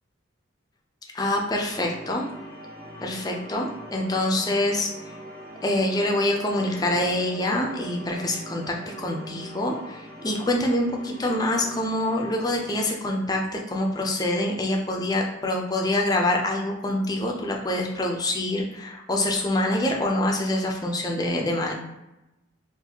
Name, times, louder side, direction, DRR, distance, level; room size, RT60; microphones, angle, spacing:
voice 1, 1.1-2.3 3.0-4.9 5.6-21.7, left 1 dB, 20° left, 0 dB, 0.5 m, -25 dB
sound 1, 1.7-12.8, right 1 dB, 40° right, 1.1 m, -42 dB
3.9 x 2.6 x 2.8 m, 0.95 s
head